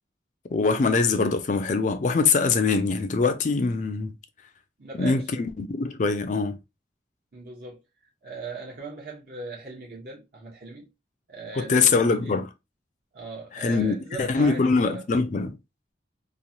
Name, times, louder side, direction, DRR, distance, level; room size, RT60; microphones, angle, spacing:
voice 1, 0.5-4.1 5.0-6.6 11.6-12.5 13.6-15.6, left 4 dB, 45° left, 0.4 m, -23 dB
voice 2, 4.8-5.3 7.3-7.8 8.2-10.9 11.3-12.4 13.1-15.1, right 3 dB, 55° right, 0.8 m, -39 dB
3.0 x 2.2 x 2.6 m
head